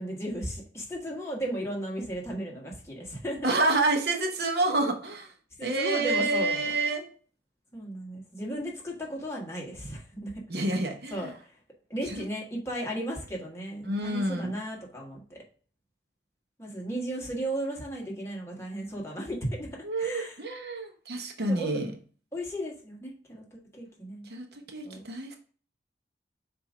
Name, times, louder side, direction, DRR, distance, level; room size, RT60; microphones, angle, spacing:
voice 1, 0.0-3.5 5.6-6.7 7.7-10.3 11.1-11.6 11.9-15.4 16.6-19.7 20.0-20.4 21.5-21.7 22.3-24.3 24.8-25.0, right 1 dB, 15° left, -2 dB, 1.5 m, -35 dB
voice 2, 3.4-5.3 5.6-7.1 10.5-11.3 12.1-12.2 13.8-14.6 19.8-21.9 24.2-25.4, right 2 dB, 60° right, 3 dB, 0.9 m, -28 dB
7.1 x 2.7 x 4.9 m, 0.42 s
head